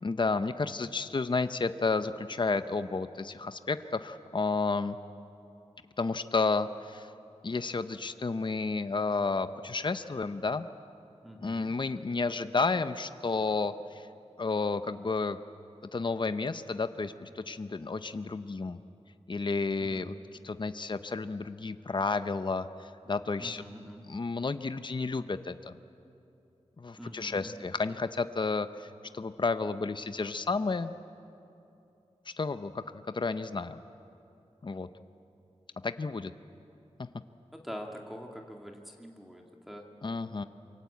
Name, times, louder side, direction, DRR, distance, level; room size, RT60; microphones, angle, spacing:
voice 1, 0.0-5.0 6.0-7.1 7.4-10.7 11.4-14.1 14.4-15.4 15.9-18.8 19.3-20.1 20.4-23.6 24.1-25.8 26.8-30.9 32.3-33.8 34.6-34.9 35.8-36.3 37.0-37.1 40.0-40.4, left 4 dB, 40° left, 11 dB, 0.8 m, -31 dB
voice 2, 11.2-11.7 19.8-20.1 23.4-24.0 27.0-27.7 37.5-39.8, equal, ahead, 1 dB, 2.2 m, -44 dB
27.5 x 23.5 x 8.4 m, 2.7 s
wide cardioid pair, 90°, 12 cm